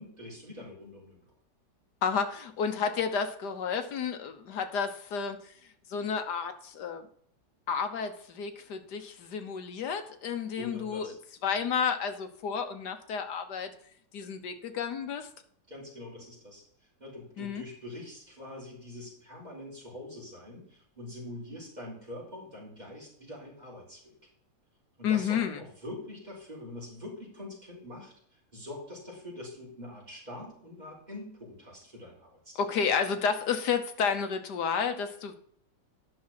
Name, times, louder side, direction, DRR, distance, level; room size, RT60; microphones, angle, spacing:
voice 1, 0.0-1.3 10.5-11.2 15.7-16.6 17.0-24.1 25.0-28.1 28.5-32.6, left 1 dB, 25° right, -4 dB, 4.3 m, -44 dB
voice 2, 2.0-5.4 5.9-7.1 7.7-11.1 11.4-13.7 14.1-15.3 17.4-17.6 25.0-25.6 32.6-35.4, left 6 dB, 70° left, 7 dB, 1.6 m, -31 dB
10.0 x 6.1 x 5.8 m, 0.63 s
omnidirectional pair, 1.9 m